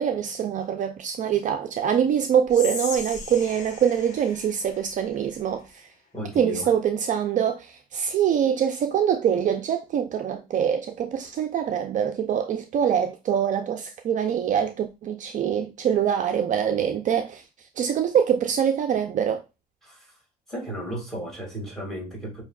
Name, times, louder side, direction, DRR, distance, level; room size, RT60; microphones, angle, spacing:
voice 1, 0.0-5.8 6.4-17.4 17.8-19.4, right 8 dB, 50° right, 0.5 m, -24 dB
Whispering, 2.5-5.7, left 4 dB, 45° left, 1.1 m, -37 dB
voice 2, 6.1-6.7 19.8-20.2 20.5-22.4, equal, ahead, 2.0 m, -34 dB
5.6 x 2.8 x 2.3 m
cardioid pair, 110°, 17 cm